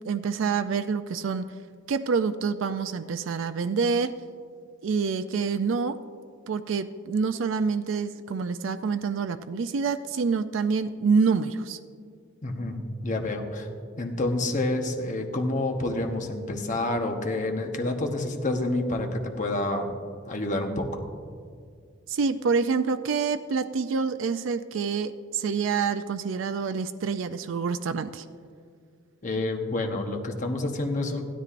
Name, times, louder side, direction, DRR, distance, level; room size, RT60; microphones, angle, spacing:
voice 1, 0.0-1.5 1.9-4.2 4.8-6.0 6.5-11.8 22.1-28.2, right 5 dB, 75° right, 10 dB, 0.4 m, -27 dB
voice 2, 12.4-13.7 14.0-19.9 20.3-21.0 29.2-31.2, left 2 dB, 40° left, 3 dB, 1.1 m, -28 dB
16.0 x 12.5 x 2.5 m, 2.1 s
head